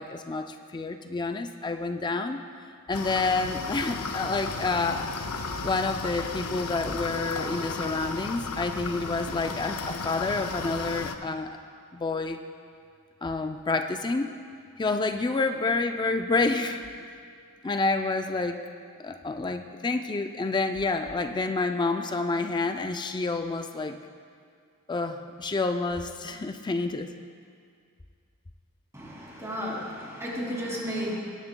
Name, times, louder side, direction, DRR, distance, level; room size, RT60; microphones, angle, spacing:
voice 1, 0.0-2.4 2.9-5.1 5.6-11.6 11.9-12.4 13.2-14.3 14.8-17.1 17.6-18.6 19.0-24.0 24.9-27.1, left 3 dB, 20° left, 7 dB, 0.3 m, -28 dB
sound 1, 2.9-11.2, left 4 dB, 75° left, 0.6 m, -34 dB
voice 2, 28.9-31.2, equal, 15° right, -4 dB, 2.4 m, -33 dB
19.5 x 10.5 x 2.2 m, 2.2 s
head